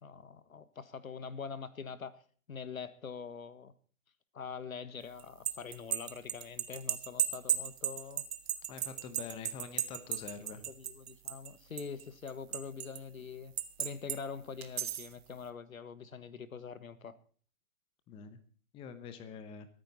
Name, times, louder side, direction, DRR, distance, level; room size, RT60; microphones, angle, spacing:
voice 1, 0.0-2.1 2.5-3.7 4.3-8.2 10.7-13.5 13.8-17.2, left 6 dB, 70° left, 15 dB, 1.6 m, -44 dB
sound 1, 5.2-11.5 11.8-13.0 13.6-14.2 14.6-15.1, right 10 dB, 45° right, 1.4 m, -35 dB
voice 2, 8.7-10.7 18.1-18.4 18.7-19.7, left 6 dB, 10° left, 11 dB, 0.9 m, -45 dB
24.5 x 9.3 x 4.1 m, 0.43 s
figure-of-eight pair, 125°, 43 cm